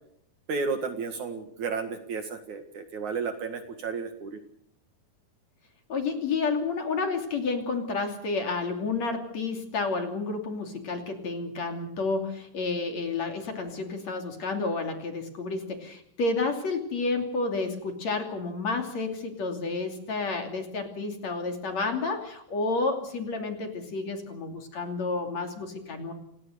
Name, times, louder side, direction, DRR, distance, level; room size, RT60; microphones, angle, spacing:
voice 1, 0.5-4.4, right 5 dB, 55° right, 8 dB, 2.8 m, -32 dB
voice 2, 5.9-26.1, left 3 dB, 45° left, 5 dB, 3.8 m, -30 dB
29.0 x 17.5 x 6.7 m, 0.71 s
omnidirectional pair, 4.6 m